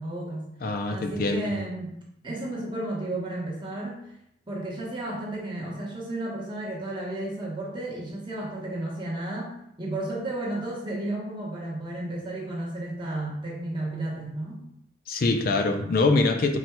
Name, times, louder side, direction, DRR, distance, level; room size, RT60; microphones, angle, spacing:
voice 1, 0.0-0.5 0.9-1.9 2.2-4.0 4.5-14.6, right 1 dB, 25° right, -4 dB, 1.0 m, -33 dB
voice 2, 0.6-1.5 15.1-16.6, left 3 dB, 50° left, 5 dB, 0.4 m, -24 dB
4.2 x 2.3 x 4.4 m, 0.76 s
head